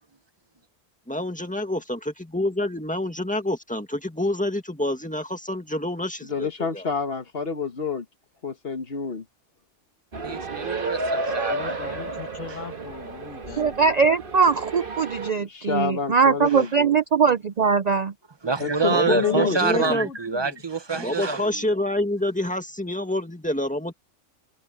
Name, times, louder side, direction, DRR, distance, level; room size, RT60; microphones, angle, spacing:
voice 1, 1.1-6.5 6.7-6.9 18.9-20.1 21.0-23.9, left 1 dB, 5° left, 1.8 m, -27 dB
voice 2, 6.2-8.0 8.4-9.2 15.3-17.0 18.6-20.0, left 5 dB, 50° left, 1.6 m, -28 dB
sound 1, 10.1-15.3, right 2 dB, 45° right, 1.6 m, -31 dB
voice 3, 10.2-12.0 12.5-12.6 16.5-16.6 18.4-21.7, right 4 dB, 25° right, 0.9 m, -27 dB
voice 4, 11.4-13.8 18.8-20.6, left 6 dB, 75° left, 1.9 m, -38 dB
voice 5, 13.6-18.1, right 5 dB, 65° right, 0.4 m, -21 dB
omnidirectional pair, 1.3 m